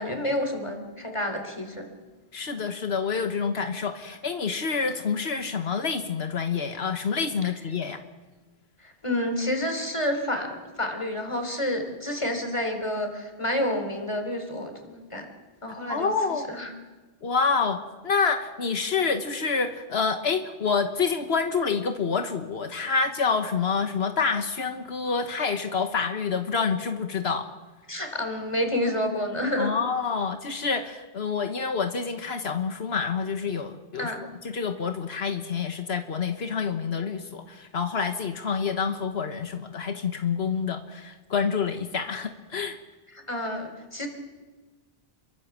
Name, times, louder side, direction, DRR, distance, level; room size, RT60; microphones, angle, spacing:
voice 1, 0.0-1.9 8.8-15.3 15.6-16.1 16.5-16.7 27.9-29.7 34.0-34.2 43.3-44.1, left 1 dB, 30° left, 5 dB, 3.9 m, -29 dB
voice 2, 2.3-8.0 15.9-16.5 17.2-27.5 29.6-42.8, left 5 dB, 85° left, 7 dB, 1.5 m, -27 dB
28.5 x 23.5 x 7.4 m, 1.3 s
omnidirectional pair, 1.0 m